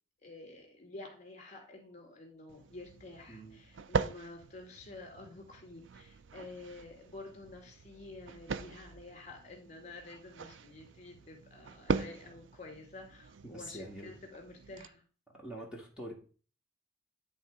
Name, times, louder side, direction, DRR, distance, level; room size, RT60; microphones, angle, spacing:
voice 1, 0.2-15.0, left 2 dB, 40° left, 4 dB, 2.2 m, -50 dB
sound 1, 2.5-14.9, right 5 dB, 90° right, 0.5 m, -41 dB
voice 2, 3.3-3.6 13.4-14.1 15.4-16.1, right 1 dB, 5° right, -2 dB, 1.5 m, -45 dB
10.0 x 3.6 x 4.9 m, 0.38 s
head